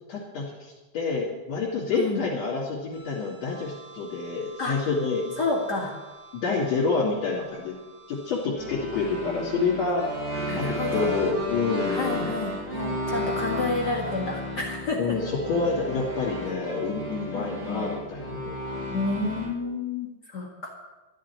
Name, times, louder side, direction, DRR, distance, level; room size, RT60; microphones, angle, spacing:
voice 1, 0.1-5.2 6.3-7.7 8.1-10.1 10.5-12.3 15.0-18.6, left 4 dB, 65° left, -6 dB, 4.0 m, -28 dB
sound 1, 2.9-19.5, equal, 30° right, 6.5 m, -34 dB
voice 2, 5.4-5.9 10.5-11.2 11.9-15.2 17.3-17.8 18.9-20.7, left 3 dB, 40° left, -2 dB, 2.1 m, -30 dB
13.5 x 7.5 x 9.9 m, 1.2 s
omnidirectional pair, 3.4 m